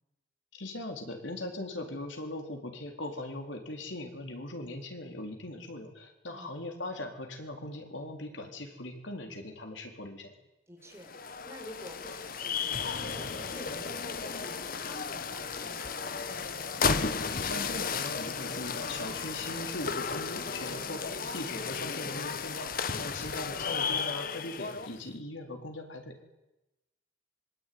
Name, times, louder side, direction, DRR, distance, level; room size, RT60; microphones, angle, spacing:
voice 1, 0.5-10.3 17.4-26.3, left 1 dB, 70° left, 4 dB, 4.1 m, -40 dB
voice 2, 10.7-16.6, equal, 15° right, 1 dB, 6.3 m, -51 dB
sound 1, 10.9-25.0, left 5 dB, 45° left, 1.2 m, -34 dB
25.5 x 23.5 x 9.6 m, 0.98 s
head